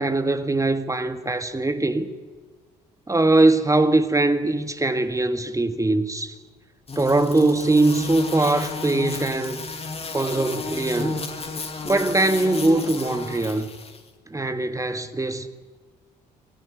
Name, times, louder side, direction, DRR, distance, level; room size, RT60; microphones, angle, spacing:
voice 1, 0.0-2.1 3.1-6.3 6.9-9.6 10.1-11.2 11.8-13.7 14.3-15.5, right 2 dB, 15° right, 1.6 m, -21 dB
sound 1, 6.9-14.0, left 4 dB, 30° left, 2.4 m, -32 dB
26.5 x 11.0 x 9.5 m
figure-of-eight pair, 45°, 21 cm